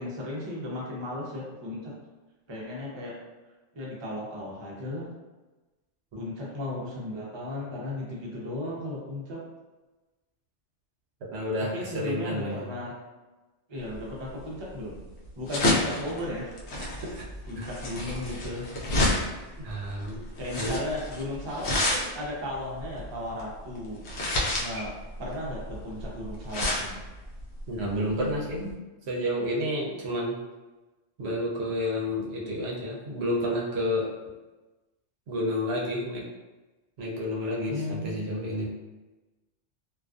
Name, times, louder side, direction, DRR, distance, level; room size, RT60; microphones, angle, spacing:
voice 1, 0.0-1.9 2.5-3.2 3.7-5.1 6.1-9.4 11.6-12.9 13.7-15.0 15.3-16.6 16.8-16.9 17.5-18.6 20.4-24.0 24.6-24.9 25.2-27.0 37.7-38.2, left 1 dB, 35° right, -4 dB, 0.4 m, -35 dB
voice 2, 11.3-12.6 17.1-17.2 17.6-17.7 19.6-20.2 20.6-20.7 27.7-28.7 29.1-30.4 31.2-34.1 35.3-36.2 37.0-38.6, left 1 dB, 70° right, -3 dB, 0.8 m, -30 dB
sound 1, 13.9-28.7, left 1 dB, 75° left, 0.8 m, -30 dB
2.4 x 2.3 x 2.3 m, 1.1 s
omnidirectional pair, 1.2 m